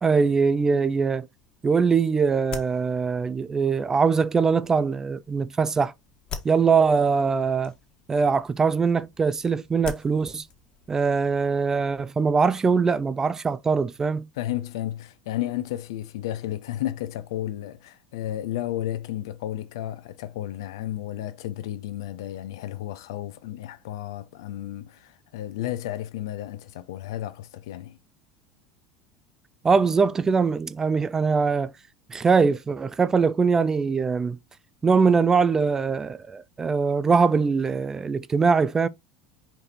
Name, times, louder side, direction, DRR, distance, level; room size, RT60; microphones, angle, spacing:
voice 1, 0.0-1.3 1.6-5.9 6.4-7.7 8.1-10.5 10.9-14.3 29.6-31.7 32.1-34.4 34.8-38.9, right 5 dB, 20° right, 0.5 m, -22 dB
sound 1, 1.4-11.7, left 6 dB, 35° left, 1.5 m, -45 dB
voice 2, 14.3-28.0, left 13 dB, 65° left, 0.7 m, -33 dB
5.0 x 4.4 x 4.3 m
figure-of-eight pair, 75°, 2 cm